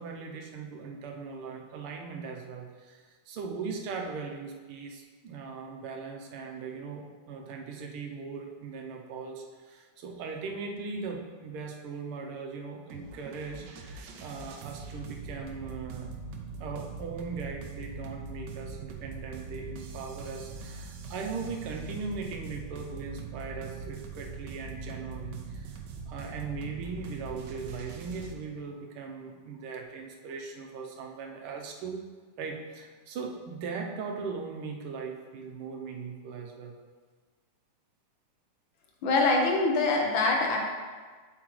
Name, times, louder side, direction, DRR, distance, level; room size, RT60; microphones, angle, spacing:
voice 1, 0.0-16.1 16.6-25.7 26.1-32.0 32.4-36.8, right 5 dB, 85° right, 2 dB, 1.6 m, -39 dB
sound 1, 12.9-28.4, right 4 dB, 70° right, 1.1 m, -42 dB
voice 2, 39.0-40.6, left 3 dB, 70° left, 1 dB, 1.5 m, -24 dB
7.4 x 4.8 x 3.1 m, 1.4 s
omnidirectional pair, 2.4 m